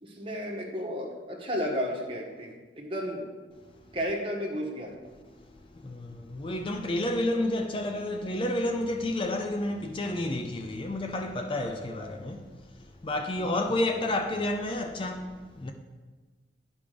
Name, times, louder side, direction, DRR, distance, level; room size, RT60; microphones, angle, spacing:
voice 1, 0.0-3.2 3.9-4.9 13.4-13.7, equal, 30° right, 1.4 m, -33 dB
voice 2, 5.7-12.6 13.0-15.7, left 1 dB, 30° left, 0.4 m, -30 dB
10.5 x 5.1 x 5.1 m
head